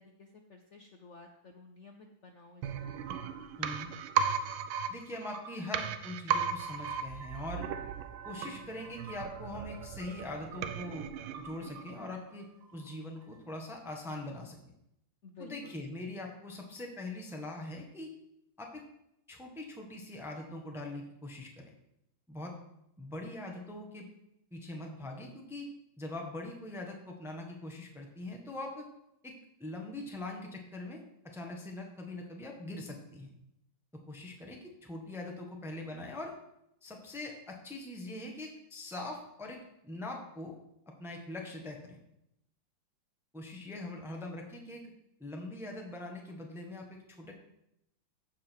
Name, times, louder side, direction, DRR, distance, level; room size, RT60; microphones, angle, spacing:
voice 1, 0.0-3.0 15.2-15.8, left 3 dB, 75° left, 4 dB, 0.6 m, -53 dB
sound 1, 2.6-12.3 12.6-12.7, right 7 dB, 75° right, 1.3 m, -36 dB
voice 2, 4.9-7.7 8.2-11.1 11.4-12.5 12.7-14.6 15.4-18.1 18.6-18.8 19.3-21.7 22.3-22.5 23.0-24.0 24.5-25.7 26.0-28.9 29.2-29.3 29.6-31.0 31.3-33.3 34.1-36.3 36.8-39.6 39.8-40.5 41.0-42.0 43.3-44.8 45.2-47.3, left 2 dB, ahead, 1 dB, 1.0 m, -42 dB
15.0 x 5.0 x 4.5 m, 0.82 s
omnidirectional pair, 2.2 m